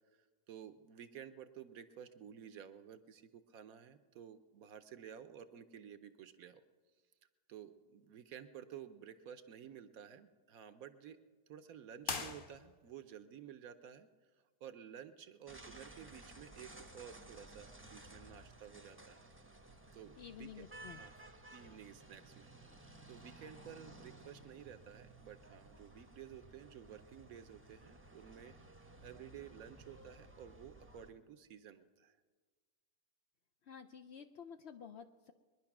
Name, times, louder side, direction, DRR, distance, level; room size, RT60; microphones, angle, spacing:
voice 1, 0.1-6.6 7.5-11.2 11.5-14.1 14.6-19.3 19.9-21.1 21.5-22.7 23.1-28.5 29.0-32.2, right 9 dB, 65° right, 10 dB, 1.1 m, -53 dB
sound 1, 12.0-13.1, left 4 dB, 40° left, 0.9 m, -42 dB
sound 2, 15.5-31.1, right 2 dB, 10° right, 0.7 m, -56 dB
voice 2, 20.2-21.0 33.7-35.3, left 7 dB, 65° left, 8 dB, 0.6 m, -51 dB
22.0 x 10.5 x 5.9 m, 1.4 s
omnidirectional pair, 1.7 m